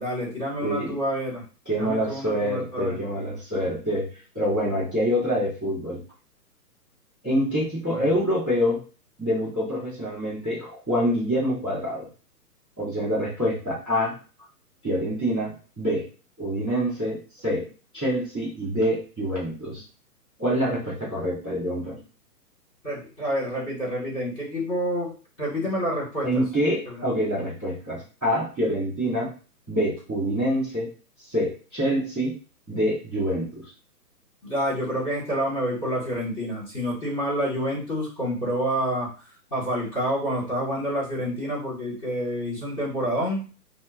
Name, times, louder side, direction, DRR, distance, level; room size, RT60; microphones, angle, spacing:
voice 1, 0.0-1.4 1.8-3.0 7.9-8.1 22.8-26.4 26.9-27.0 34.4-39.1 39.5-43.4, equal, 15° left, -7 dB, 1.9 m, -28 dB
voice 2, 0.6-0.9 1.7-4.1 4.3-6.0 7.2-8.8 9.2-12.1 12.8-14.1 14.8-16.0 16.4-17.7 17.9-19.8 20.4-22.0 26.2-29.3 29.7-30.9 31.3-32.3 32.7-33.5, equal, 10° right, -16 dB, 0.9 m, -26 dB
5.5 x 2.1 x 2.6 m, 0.36 s
hypercardioid pair, 175°, 48 cm